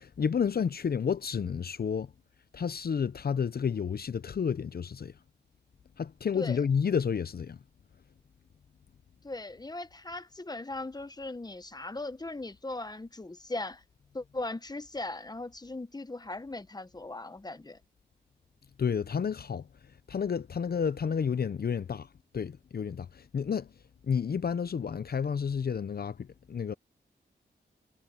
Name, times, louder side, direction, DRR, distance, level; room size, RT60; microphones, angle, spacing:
voice 1, 0.0-2.1 2.5-5.1 6.0-7.6 18.8-19.6 20.1-22.1 22.3-23.7 24.0-26.7, left 6 dB, 60° left, 0.7 m, -30 dB
voice 2, 9.2-13.8 14.1-17.8, left 2 dB, 20° left, 1.3 m, -38 dB
cardioid pair, 55°, 18 cm